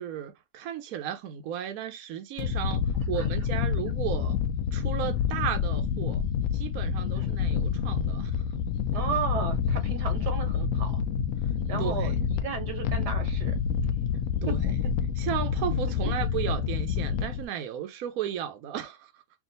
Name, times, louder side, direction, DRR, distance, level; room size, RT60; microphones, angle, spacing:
voice 1, 0.0-2.8 3.1-4.4 4.7-6.2 6.5-8.3 11.8-12.2 14.4-14.7 15.2-19.2, right 10 dB, 70° right, 1.1 m, -34 dB
sound 1, 2.4-17.4, left 7 dB, 70° left, 1.0 m, -28 dB
voice 2, 8.9-10.9 11.7-13.5 14.6-14.7, right 6 dB, 90° right, 1.7 m, -34 dB
3.6 x 2.5 x 3.9 m
omnidirectional pair, 1.7 m